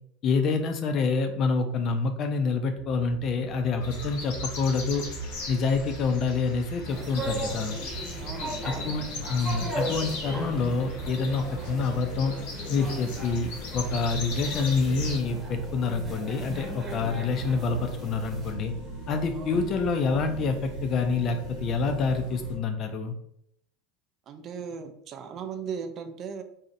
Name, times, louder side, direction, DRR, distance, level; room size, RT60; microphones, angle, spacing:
voice 1, 0.2-5.1 5.5-7.7 8.6-12.3 12.7-18.7 19.1-23.1, left 4 dB, 45° left, 6 dB, 0.3 m, -27 dB
sound 1, 2.8-22.6, right 4 dB, 75° right, 1.0 m, -40 dB
sound 2, 3.8-15.2, left 3 dB, 70° left, 0.7 m, -38 dB
sound 3, 6.9-18.5, right 1 dB, 20° right, 1.0 m, -38 dB
voice 2, 8.2-8.6 19.3-19.7 24.3-26.4, right 6 dB, 45° right, 7 dB, 0.3 m, -37 dB
2.6 x 2.0 x 2.5 m, 0.73 s
supercardioid pair, 100°, 0 cm